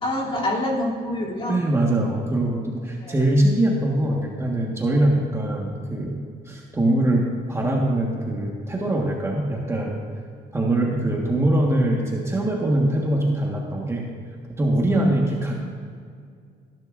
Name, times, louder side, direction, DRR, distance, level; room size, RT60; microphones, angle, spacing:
voice 1, 0.0-1.6 3.0-3.1 14.9-15.2, left 1 dB, 35° left, -4 dB, 2.9 m, -26 dB
voice 2, 1.5-6.2 6.5-10.0 10.5-14.1 14.6-15.5, right 1 dB, 15° right, -2 dB, 1.5 m, -22 dB
19.0 x 10.5 x 2.6 m, 2.1 s
cardioid pair, 110°, 17 cm